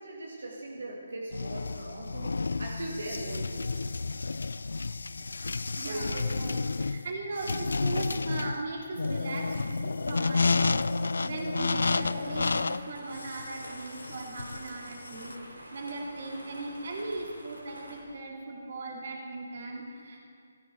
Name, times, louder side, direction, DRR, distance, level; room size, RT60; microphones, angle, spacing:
voice 1, 0.0-3.9 5.8-6.4, right 2 dB, 65° right, -2 dB, 2.1 m, -40 dB
sound 1, 1.3-15.3, left 4 dB, 65° left, 0.3 m, -31 dB
voice 2, 5.8-10.9 11.2-20.2, right 3 dB, 50° right, 0 dB, 2.4 m, -38 dB
sound 2, 11.7-18.0, right 1 dB, 85° right, 3.1 m, -47 dB
17.0 x 13.5 x 4.4 m, 2.3 s
figure-of-eight pair, 140°, 0 cm